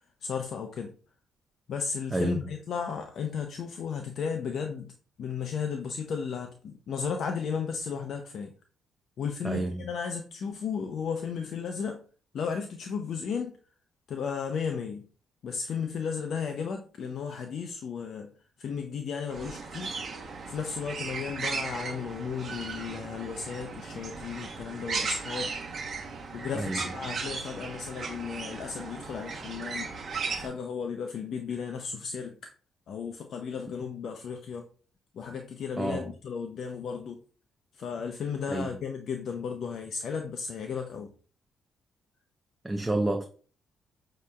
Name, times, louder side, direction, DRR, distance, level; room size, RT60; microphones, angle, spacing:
voice 1, 0.2-0.9 1.7-8.5 9.2-12.0 12.3-13.6 14.1-15.0 15.4-18.3 18.6-19.9 20.5-25.5 26.3-29.9 30.4-32.5 32.9-34.7 35.1-37.2 37.7-41.1, left 6 dB, 65° left, 0.5 m, -34 dB
voice 2, 9.4-9.8 26.5-26.8 35.8-36.1 38.5-38.7 42.6-43.2, right 2 dB, 15° right, 0.4 m, -29 dB
sound 1, 19.3-30.5, right 4 dB, 50° right, 0.9 m, -36 dB
6.2 x 2.8 x 2.3 m
cardioid pair, 90°, 0 cm